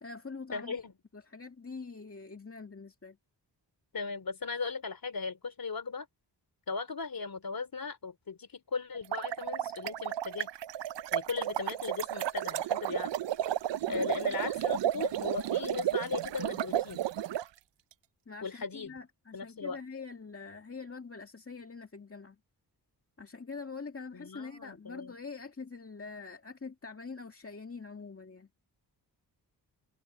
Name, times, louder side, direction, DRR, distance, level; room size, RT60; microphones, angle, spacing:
voice 1, 0.0-0.8 1.1-3.2 13.9-14.4 18.3-22.4 23.2-28.5, left 4 dB, 30° left, 2.1 m, -44 dB
voice 2, 0.5-0.9 3.9-6.1 6.7-10.5 11.1-13.1 13.9-17.0 18.4-18.9 19.3-19.8 24.1-25.1, left 4 dB, 55° left, 3.1 m, -37 dB
sound 1, 8.9-17.4, right 12 dB, 80° right, 0.7 m, -33 dB
cardioid pair, 65°, 43 cm